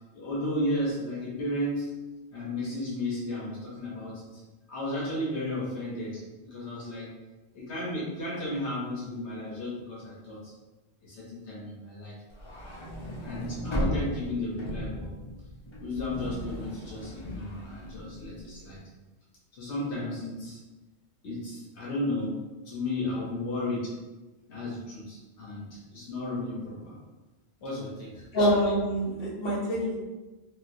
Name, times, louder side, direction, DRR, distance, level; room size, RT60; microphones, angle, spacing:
voice 1, 0.1-1.9 2.3-4.4 4.7-6.2 6.5-7.1 7.5-10.5 11.0-12.1 13.2-15.1 15.8-18.8 19.5-20.6 21.2-22.4 22.6-23.9 24.5-27.0 27.6-28.2, left 1 dB, 80° left, -5 dB, 1.1 m, -34 dB
sound 1, 12.3-18.6, equal, 35° left, 0.5 m, -36 dB
voice 2, 28.3-29.9, equal, 60° left, -6 dB, 1.1 m, -25 dB
3.9 x 2.1 x 2.6 m, 1.2 s
omnidirectional pair, 1.1 m